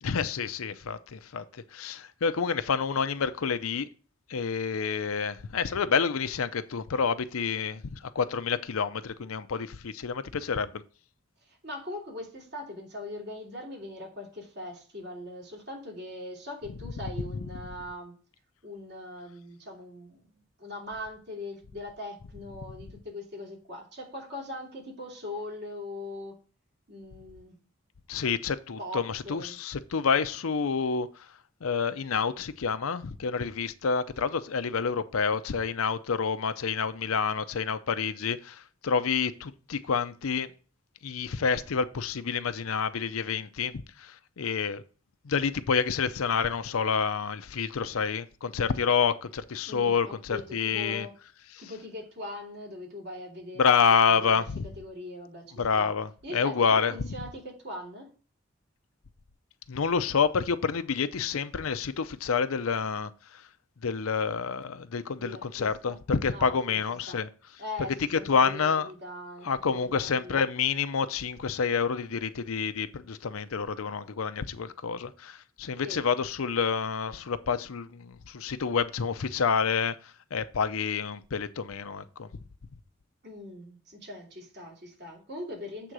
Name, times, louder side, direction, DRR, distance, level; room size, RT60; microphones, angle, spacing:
voice 1, 0.0-3.9 4.3-10.8 17.3-17.4 28.1-31.3 31.6-40.5 41.0-44.8 45.2-51.1 51.5-51.6 53.6-54.6 55.5-56.9 59.7-63.4 63.8-67.3 68.1-68.9 69.4-80.0 80.3-82.3, left 6 dB, 85° left, 0.6 m, -28 dB
voice 2, 11.5-18.1 18.6-20.2 20.6-26.3 26.9-27.6 28.8-29.6 49.7-51.1 51.6-53.8 54.1-54.4 54.8-55.9 56.2-58.1 65.2-66.0 66.3-66.8 67.1-67.2 67.6-70.4 75.8-76.0 83.2-85.9, left 1 dB, 55° right, 2.8 m, -41 dB
8.0 x 3.7 x 6.1 m
head